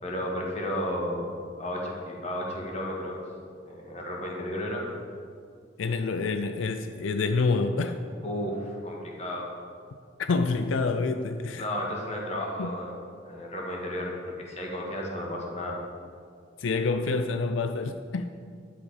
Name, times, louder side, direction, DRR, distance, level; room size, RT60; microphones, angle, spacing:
voice 1, 0.0-1.3 1.6-3.2 3.6-4.9 8.2-9.5 11.6-15.8, left 1 dB, 35° left, -1 dB, 1.8 m, -33 dB
voice 2, 5.8-8.0 10.3-11.6 12.6-12.7 16.6-18.3, left 3 dB, 90° left, 8 dB, 0.5 m, -27 dB
11.0 x 7.6 x 5.0 m, 2.2 s
head